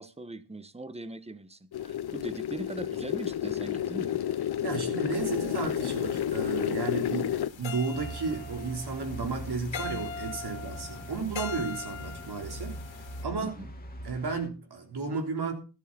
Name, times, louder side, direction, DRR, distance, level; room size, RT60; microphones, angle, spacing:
voice 1, 0.0-4.2 13.4-13.7, right 2 dB, 15° right, 1.2 m, -40 dB
sound 1, 1.7-7.5, left 10 dB, 60° left, 0.8 m, -31 dB
voice 2, 4.6-12.8 13.2-13.6 14.0-15.5, right 4 dB, 60° right, 3.8 m, -33 dB
sound 2, 5.1-13.2, left 5 dB, 80° left, 2.2 m, -42 dB
sound 3, 7.9-14.5, equal, 20° left, 2.8 m, -42 dB
13.5 x 12.0 x 4.0 m
cardioid pair, 80°, 44 cm